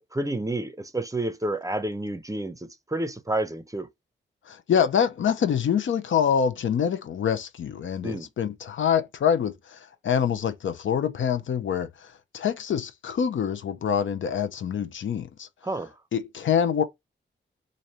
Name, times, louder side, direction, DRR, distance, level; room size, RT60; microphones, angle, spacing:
voice 1, 0.0-3.9 8.0-8.3 15.6-15.9, right 1 dB, 15° right, 0.6 m, -30 dB
voice 2, 4.5-15.5 16.1-16.8, left 8 dB, 75° left, 0.7 m, -25 dB
3.2 x 2.6 x 4.1 m
cardioid pair, 75°, 20 cm